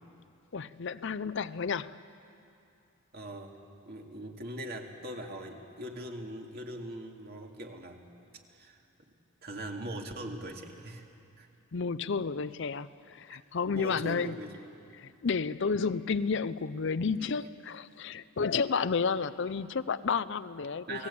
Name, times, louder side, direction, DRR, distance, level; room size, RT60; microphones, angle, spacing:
voice 1, 0.5-2.0 11.7-14.4 15.0-21.1, left 5 dB, 55° left, 0.5 m, -31 dB
voice 2, 3.1-3.5 3.8-8.1 8.5-8.8 9.4-11.0 11.4-11.5 13.6-14.6 17.2-17.4 20.9-21.1, right 1 dB, 50° right, 2.3 m, -41 dB
29.5 x 18.5 x 8.6 m
head